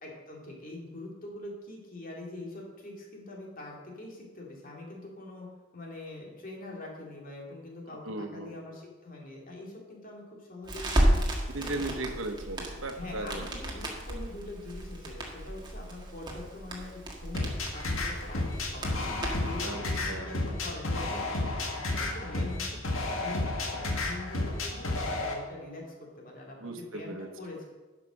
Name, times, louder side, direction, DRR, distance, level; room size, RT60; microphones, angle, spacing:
voice 1, 0.0-5.5 5.7-11.2 11.6-11.9 12.9-17.5 17.7-19.0 19.4-21.4 21.7-22.8 23.1-23.5 23.9-27.6, left 2 dB, 40° left, -1 dB, 2.4 m, -43 dB
voice 2, 8.0-8.5 11.5-13.5 19.6-19.8 20.1-20.4 26.6-27.3, right 2 dB, 75° right, 6 dB, 1.2 m, -37 dB
Crackle, 10.7-19.6, right 1 dB, 20° right, 1.7 m, -33 dB
sound 1, 17.3-25.3, left 2 dB, 80° left, 1.7 m, -32 dB
11.5 x 6.0 x 6.2 m, 1.2 s
head